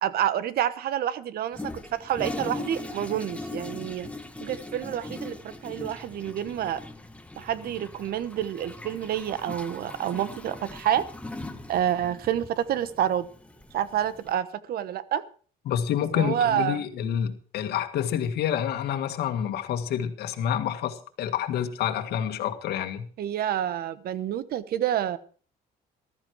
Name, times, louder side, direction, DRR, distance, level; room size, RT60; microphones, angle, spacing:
voice 1, 0.0-4.1 4.4-6.8 7.4-11.1 11.7-13.3 13.7-15.2 16.1-16.8 23.2-25.2, right 10 dB, 65° right, 15 dB, 1.1 m, -28 dB
Toilet flush, 1.5-14.3, left 2 dB, 5° left, 1.6 m, -40 dB
voice 2, 15.7-23.0, left 9 dB, 70° left, 7 dB, 1.9 m, -28 dB
14.5 x 13.0 x 4.7 m, 0.42 s
cardioid pair, 110°, 17 cm